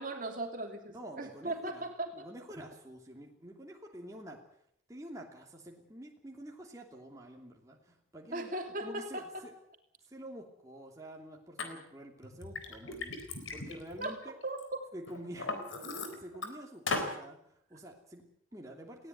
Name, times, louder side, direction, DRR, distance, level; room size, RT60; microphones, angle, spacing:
voice 1, 0.0-2.3 8.3-9.4 14.0-14.1 14.4-14.8, right 2 dB, 45° right, 4 dB, 2.9 m, -38 dB
voice 2, 0.9-1.8 2.1-4.4 4.9-8.5 8.8-9.5 10.1-14.3 14.9-19.1, right 1 dB, 15° right, 0 dB, 2.9 m, -48 dB
Liquid, 11.6-11.7 12.2-14.6 15.1-16.5 16.9-17.1, left 3 dB, 85° left, 4.0 m, -37 dB
19.5 x 17.0 x 9.5 m, 0.72 s
head